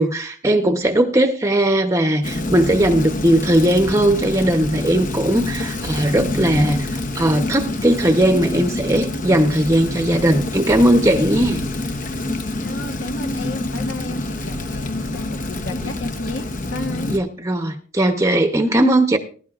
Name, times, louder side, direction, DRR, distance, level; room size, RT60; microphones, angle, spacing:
voice 1, 0.0-11.6 17.1-19.2, right 1 dB, 15° right, 6 dB, 0.8 m, -18 dB
Rain, 2.2-17.2, left 2 dB, 45° left, 0.8 m, -27 dB
voice 2, 12.6-17.1, left 2 dB, 80° left, 5 dB, 1.7 m, -32 dB
19.5 x 11.5 x 2.5 m, 0.42 s
head